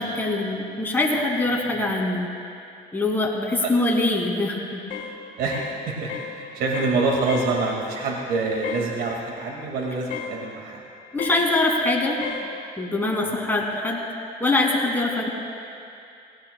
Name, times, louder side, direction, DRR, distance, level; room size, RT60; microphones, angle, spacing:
voice 1, 0.0-2.3 2.9-4.8 11.1-12.2 12.8-14.0 14.4-15.3, left 2 dB, 10° left, -2 dB, 2.4 m, -23 dB
sound 1, 4.9-5.1 5.5-5.8 6.1-6.3 6.7-7.0 7.3-7.5 8.6-8.9 10.1-10.4 11.2-11.4 12.2-12.5, left 7 dB, 60° left, 2.9 m, -33 dB
voice 2, 5.4-10.8 13.2-13.4, right 3 dB, 70° right, -1 dB, 2.0 m, -26 dB
19.0 x 17.5 x 2.2 m, 2.5 s
cardioid pair, 110°, 17 cm